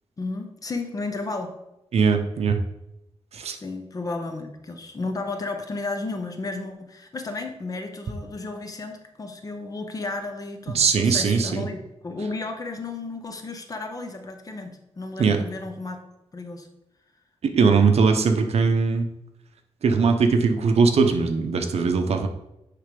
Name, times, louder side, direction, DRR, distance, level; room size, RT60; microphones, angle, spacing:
voice 1, 0.2-1.6 3.6-16.0 16.3-16.7, left 3 dB, 35° left, 5 dB, 0.9 m, -33 dB
voice 2, 1.9-2.6 3.3-3.6 10.7-11.6 15.2-15.4 17.4-19.1 19.8-22.3, right 5 dB, 70° right, 5 dB, 0.9 m, -20 dB
9.5 x 3.3 x 5.3 m, 0.88 s
wide cardioid pair, 155°, 11 cm